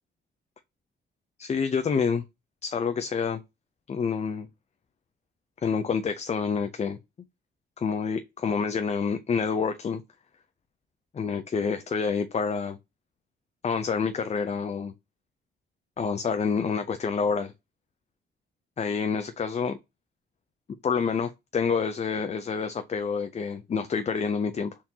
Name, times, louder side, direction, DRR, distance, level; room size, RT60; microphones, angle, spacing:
voice 1, 1.4-2.2 2.6-3.4 3.9-4.5 5.6-7.0 7.8-10.0 11.1-12.8 13.6-14.9 16.0-17.5 18.8-19.8 20.8-24.8, left 5 dB, 35° left, 0.6 m, -28 dB
4.2 x 3.7 x 2.8 m
cardioid pair, 90°, 20 cm